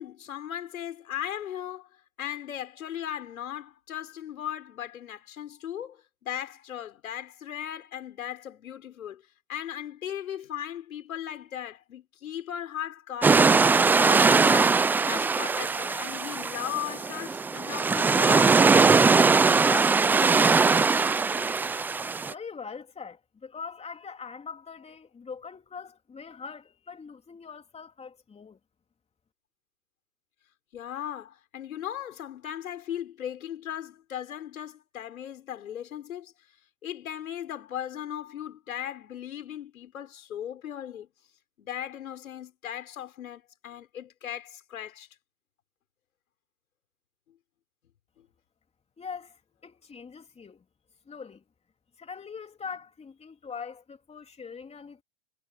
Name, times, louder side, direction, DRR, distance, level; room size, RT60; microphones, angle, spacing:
voice 1, 0.0-1.9 2.2-9.2 9.5-13.5 13.9-21.1 30.7-36.3 36.8-41.1 41.6-45.1 47.3-47.4 48.2-48.3, left 10 dB, 85° left, 6.1 m, -37 dB
sound 1, 13.2-22.3, right 4 dB, 5° right, 0.3 m, -21 dB
voice 2, 22.3-28.6 49.0-50.6 51.1-51.4 52.0-55.0, left 5 dB, 15° left, 3.3 m, -42 dB
hypercardioid pair, 120°, 40 cm